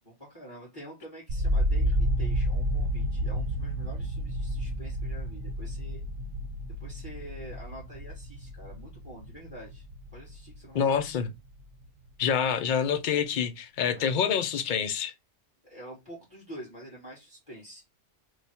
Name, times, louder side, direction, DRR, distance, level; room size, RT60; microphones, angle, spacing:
voice 1, 0.0-6.0 6.8-9.8 10.1-11.0 13.9-14.1 15.6-17.8, right 1 dB, 20° left, 1.5 m, -46 dB
sound 1, 1.3-11.3 11.6-12.3, equal, 85° right, 1.0 m, -31 dB
voice 2, 10.7-11.3 12.2-15.1, left 7 dB, 55° left, 0.6 m, -27 dB
3.1 x 2.2 x 4.2 m
omnidirectional pair, 1.2 m